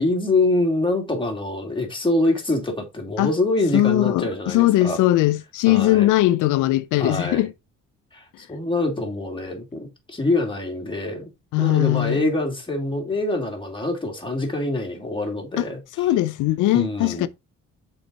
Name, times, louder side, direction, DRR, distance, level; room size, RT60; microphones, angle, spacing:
voice 1, 0.0-5.0 5.7-6.1 7.0-7.5 8.1-11.3 11.6-16.1 16.7-17.3, left 2 dB, 15° left, 2.9 m, -25 dB
voice 2, 3.7-7.5 11.5-12.3 15.6-15.7 16.0-17.3, left 15 dB, 90° left, 0.6 m, -20 dB
6.8 x 4.9 x 4.2 m
cardioid pair, 90°, 30 cm